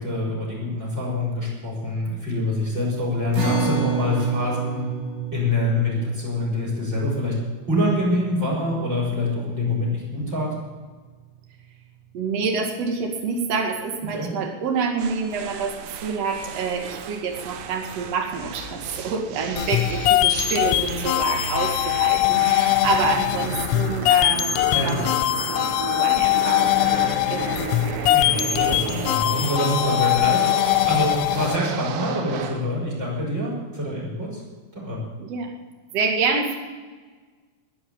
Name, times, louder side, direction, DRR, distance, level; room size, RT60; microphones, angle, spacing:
voice 1, 0.0-4.8 5.3-7.3 7.7-10.6 14.1-14.3 24.7-25.1 28.1-34.4 34.7-35.0, left 1 dB, 20° right, -2 dB, 6.1 m, -25 dB
sound 1, 3.3-10.0, right 7 dB, 60° right, 5.8 m, -30 dB
voice 2, 12.1-15.7 16.0-25.0 25.5-27.8 35.2-35.5 35.9-36.6, right 5 dB, 45° right, 2 dB, 2.2 m, -27 dB
sound 2, 15.0-32.7, right 7 dB, 85° right, 3.8 m, -34 dB
sound 3, 19.6-31.6, left 14 dB, 85° left, 3.0 m, -21 dB
20.5 x 7.4 x 8.9 m, 1.4 s
omnidirectional pair, 5.8 m